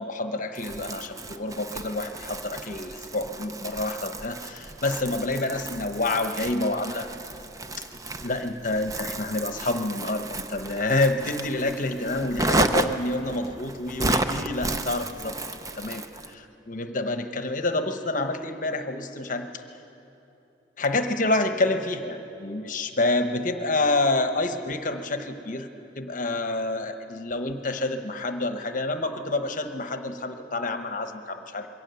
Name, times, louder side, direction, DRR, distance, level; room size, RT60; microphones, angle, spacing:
voice 1, 0.0-7.1 7.8-7.9 8.2-15.4 15.7-19.6 20.8-25.7 26.0-31.7, left 2 dB, 45° left, 7 dB, 1.0 m, -28 dB
Crumpling crinkling, 0.5-16.3, right 2 dB, 20° right, 0.6 m, -32 dB
22.5 x 17.0 x 7.0 m, 2.9 s
head